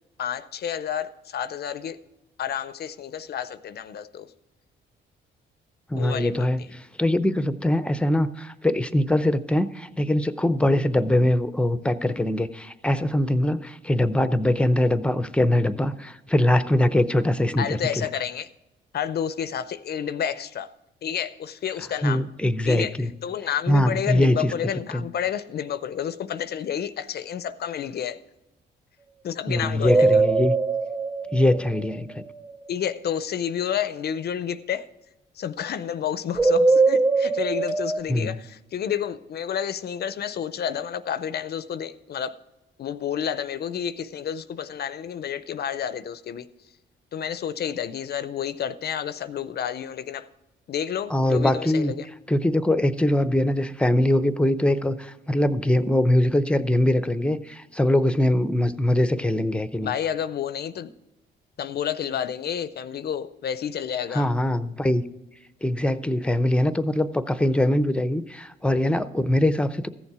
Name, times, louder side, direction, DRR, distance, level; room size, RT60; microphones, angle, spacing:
voice 1, 0.2-2.0 2.4-4.3 6.0-6.5 17.6-18.5 18.9-20.7 21.0-22.2 22.7-23.0 23.2-28.2 29.2-30.2 32.7-34.9 35.4-42.4 42.8-46.5 47.1-50.3 50.7-52.1 59.8-60.9 61.6-64.3, left 9 dB, 55° left, 14 dB, 0.5 m, -30 dB
voice 2, 5.9-18.1 22.0-23.1 23.7-24.5 24.9-25.0 29.5-30.5 31.3-32.1 38.1-38.3 51.1-51.9 52.3-59.9 64.1-65.0 65.6-69.9, left 1 dB, 5° left, 13 dB, 0.6 m, -22 dB
sound 1, 29.9-32.3 36.4-38.0, right 3 dB, 20° right, 1.4 m, -21 dB
14.5 x 7.1 x 4.8 m, 0.97 s
cardioid pair, 90°, 20 cm